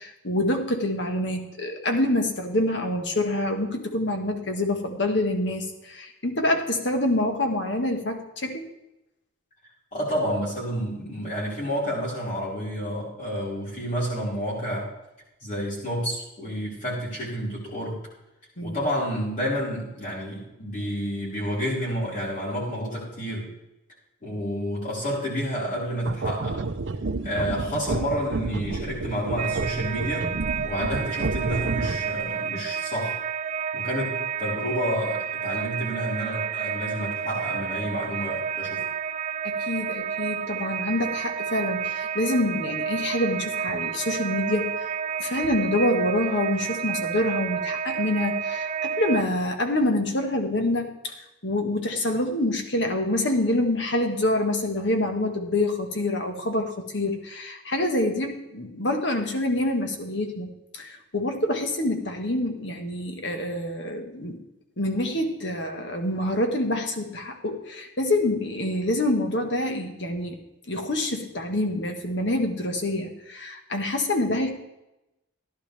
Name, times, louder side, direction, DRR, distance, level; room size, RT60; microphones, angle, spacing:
voice 1, 0.0-8.7 18.6-18.8 39.4-51.1 51.4-60.5 60.7-64.4 64.8-70.4 70.7-74.5, left 1 dB, 60° left, 4 dB, 1.6 m, -26 dB
voice 2, 9.9-14.9 15.4-18.0 18.6-23.5 24.2-26.6 27.2-30.3 30.6-33.2 33.7-38.8, equal, 40° left, -6 dB, 5.1 m, -30 dB
sound 1, 26.0-32.2, right 3 dB, 65° right, 0.6 m, -30 dB
sound 2, 29.4-49.2, right 7 dB, 35° right, 0.3 m, -30 dB
15.0 x 11.0 x 3.5 m, 0.93 s
head